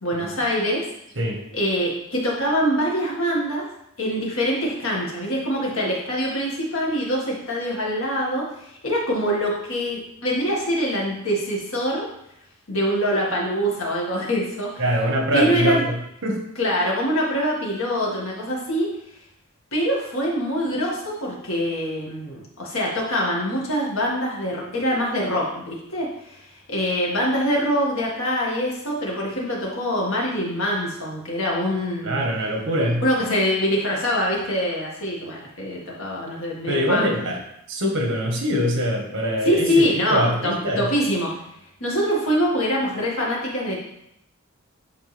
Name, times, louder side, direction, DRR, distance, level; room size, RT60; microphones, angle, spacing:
voice 1, 0.0-0.8 1.5-3.7 4.0-12.1 12.7-14.8 15.3-15.8 16.6-18.9 19.7-26.4 26.7-32.2 33.0-37.1 39.5-41.3 41.8-43.8, equal, 70° left, -3 dB, 1.9 m, -24 dB
voice 2, 14.8-16.0 16.2-16.4 32.0-33.0 36.7-37.4 37.7-40.9, equal, 60° right, 1 dB, 1.5 m, -23 dB
9.9 x 3.8 x 3.4 m, 0.78 s
head